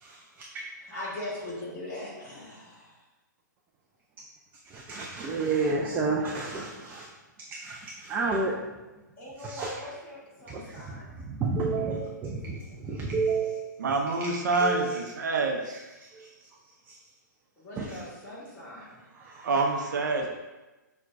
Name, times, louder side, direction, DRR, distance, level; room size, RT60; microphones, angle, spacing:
voice 1, 0.8-3.0 9.2-11.2 17.6-19.0, left 1 dB, 20° left, -8 dB, 1.5 m, -40 dB
voice 2, 4.7-7.1 7.6-8.5 9.4-9.7 10.5-10.6 10.9-11.0 11.3-13.7 14.6-15.0 16.1-16.3 17.8-17.9 19.2-19.5, right 4 dB, 15° right, -2 dB, 0.3 m, -30 dB
voice 3, 13.8-15.8 19.4-20.3, right 3 dB, 65° right, 2 dB, 0.5 m, -27 dB
5.7 x 2.2 x 2.5 m, 1.1 s
hypercardioid pair, 125°, 10 cm